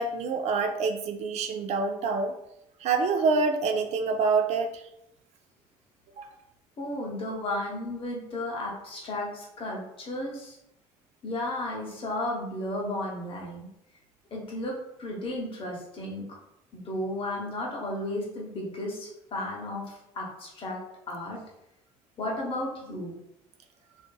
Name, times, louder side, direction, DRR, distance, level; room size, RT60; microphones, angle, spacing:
voice 1, 0.0-2.3 2.8-4.7 6.2-6.3, right 4 dB, 55° right, 6 dB, 0.4 m, -26 dB
voice 2, 6.8-10.6 11.2-13.7 14.3-16.2 16.7-19.9 20.1-20.8 21.1-21.4 22.2-23.1, left 1 dB, 40° left, -2 dB, 0.9 m, -33 dB
2.5 x 2.5 x 2.2 m, 0.82 s
supercardioid pair, 80°, 13 cm